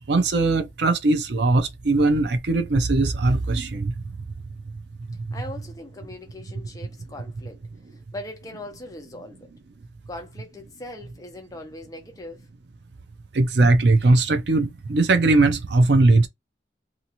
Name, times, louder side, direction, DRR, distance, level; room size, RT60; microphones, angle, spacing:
voice 1, 0.0-3.9 13.3-16.3, right 2 dB, 65° right, 0.6 m, -19 dB
voice 2, 5.3-7.6 8.1-9.5 10.1-12.5, left 1 dB, 20° left, 0.7 m, -40 dB
2.8 x 2.4 x 2.8 m
head